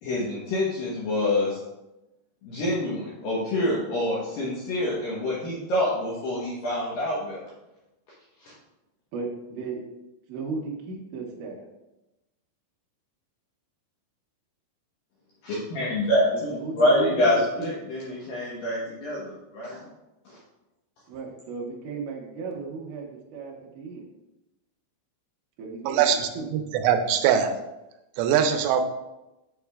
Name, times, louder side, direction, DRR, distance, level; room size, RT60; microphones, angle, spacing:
voice 1, 0.0-1.6 2.4-7.4 8.4-8.5 15.4-19.8 20.3-20.4, left 1 dB, 70° left, -7 dB, 2.3 m, -26 dB
voice 2, 9.1-9.8 10.3-11.7 16.3-17.9 21.1-24.1 25.6-26.5, right 4 dB, 70° right, -2 dB, 2.0 m, -35 dB
voice 3, 25.9-27.5 28.2-28.8, right 8 dB, 90° right, 7 dB, 3.0 m, -22 dB
7.1 x 7.0 x 2.4 m, 0.97 s
omnidirectional pair, 5.4 m